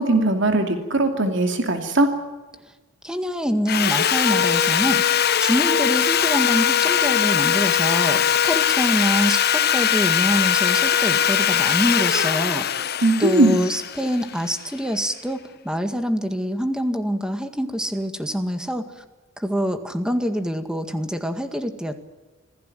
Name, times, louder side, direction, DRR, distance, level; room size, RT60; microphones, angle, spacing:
voice 1, 0.0-2.1 13.0-13.7, right 2 dB, 65° right, 5 dB, 2.8 m, -19 dB
voice 2, 3.0-12.7 13.2-18.9 19.4-22.0, equal, 5° right, 8 dB, 1.9 m, -25 dB
Sawing, 3.7-14.7, left 9 dB, 55° left, 1.0 m, -20 dB
26.5 x 17.0 x 9.3 m, 1.2 s
head